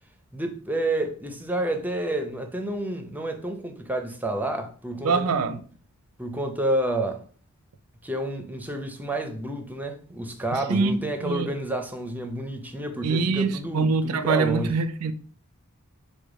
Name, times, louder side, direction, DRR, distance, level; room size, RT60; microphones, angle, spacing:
voice 1, 0.3-5.6 6.2-7.2 8.0-14.8, right 1 dB, 10° right, 0.6 m, -29 dB
voice 2, 5.0-5.6 10.5-10.9 11.2-11.5 13.0-15.1, right 4 dB, 80° right, 0.5 m, -24 dB
4.8 x 2.3 x 4.8 m
head